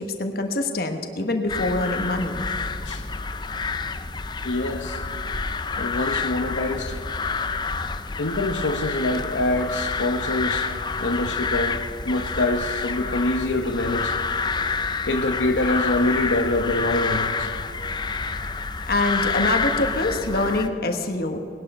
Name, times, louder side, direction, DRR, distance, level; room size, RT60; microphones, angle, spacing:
voice 1, 0.0-2.5 18.9-21.4, left 2 dB, 55° left, 5 dB, 1.2 m, -25 dB
sound 1, 1.5-20.7, left 4 dB, 25° left, 0.5 m, -28 dB
voice 2, 4.4-5.0 5.8-7.0 8.2-10.7 11.0-11.8 12.0-14.1 15.0-17.5, left 2 dB, 90° left, 5 dB, 0.9 m, -25 dB
19.5 x 11.5 x 5.5 m, 2.8 s
head